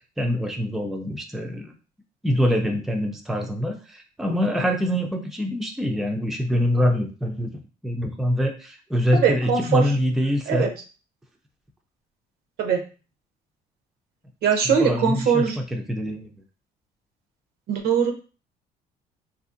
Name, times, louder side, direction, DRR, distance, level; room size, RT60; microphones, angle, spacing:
voice 1, 0.2-1.7 2.2-7.5 7.8-10.7 14.7-16.3, equal, ahead, 3 dB, 0.4 m, -24 dB
voice 2, 9.2-9.8 10.5-10.7 12.6-12.8 14.4-15.6 17.7-18.1, right 6 dB, 65° right, 5 dB, 0.6 m, -21 dB
2.8 x 2.6 x 2.5 m, 0.35 s
cardioid pair, 110°, 17 cm